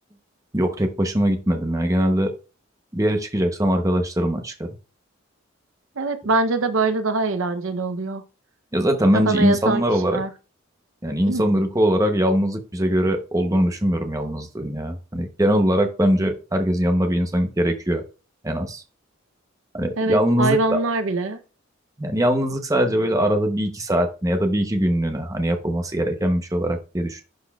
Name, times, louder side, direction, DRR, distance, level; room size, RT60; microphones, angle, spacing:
voice 1, 0.5-2.3 2.9-4.7 8.7-10.2 11.0-18.0 18.4-18.8 19.7-20.8 22.0-27.2, equal, 15° right, 5 dB, 0.8 m, -21 dB
voice 2, 6.0-8.2 9.3-10.3 11.3-11.4 20.0-21.4, right 3 dB, 75° right, 10 dB, 0.7 m, -23 dB
11.5 x 4.2 x 2.3 m, 0.33 s
head